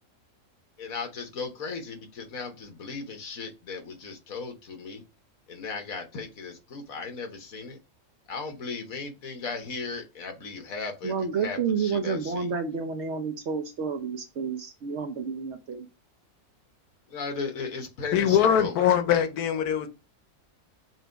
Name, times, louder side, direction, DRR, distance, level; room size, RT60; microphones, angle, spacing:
voice 1, 0.8-5.0 5.5-7.8 8.3-11.1 11.4-12.4 17.1-18.8, left 4 dB, 70° left, 1.5 m, -36 dB
voice 2, 11.0-15.9, right 5 dB, 60° right, 0.8 m, -30 dB
voice 3, 18.1-19.9, left 9 dB, 90° left, 1.3 m, -22 dB
6.1 x 2.5 x 3.4 m
omnidirectional pair, 1.6 m